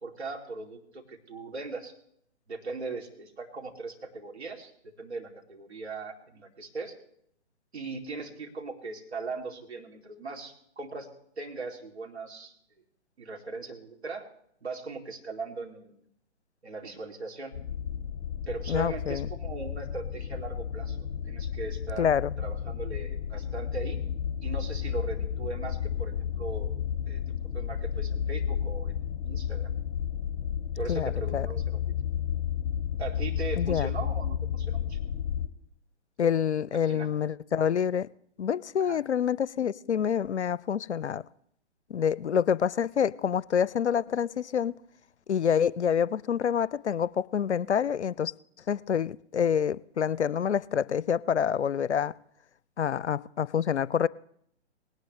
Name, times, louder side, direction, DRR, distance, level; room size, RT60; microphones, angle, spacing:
voice 1, 0.0-1.9 2.5-6.9 7.7-11.1 11.4-12.5 13.2-14.3 14.6-16.0 16.6-17.5 18.5-24.0 24.4-26.7 27.1-27.2 27.5-29.7 30.7-31.8 33.0-35.0 36.7-37.1 38.8-39.0, right 3 dB, 70° right, 2.9 m, -39 dB
sound 1, 17.5-35.5, left 8 dB, 35° left, 1.3 m, -32 dB
voice 2, 18.7-19.3 22.0-22.3 30.9-31.5 33.6-33.9 36.2-38.1 38.4-41.2 41.9-44.8 45.3-48.3 48.7-52.1 52.8-54.1, left 8 dB, 75° left, 0.5 m, -27 dB
19.0 x 18.0 x 3.3 m
figure-of-eight pair, 130°, 35 cm